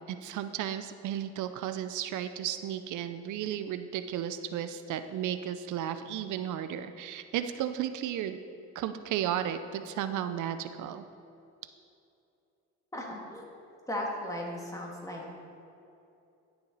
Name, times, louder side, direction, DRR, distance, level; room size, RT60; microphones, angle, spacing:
voice 1, 0.1-8.4 8.7-11.0, right 10 dB, 75° right, 10 dB, 0.5 m, -34 dB
voice 2, 12.9-13.5 13.9-15.2, left 1 dB, 10° left, -2 dB, 1.8 m, -36 dB
10.5 x 6.9 x 3.9 m, 2.7 s
cardioid pair, 90°, 30 cm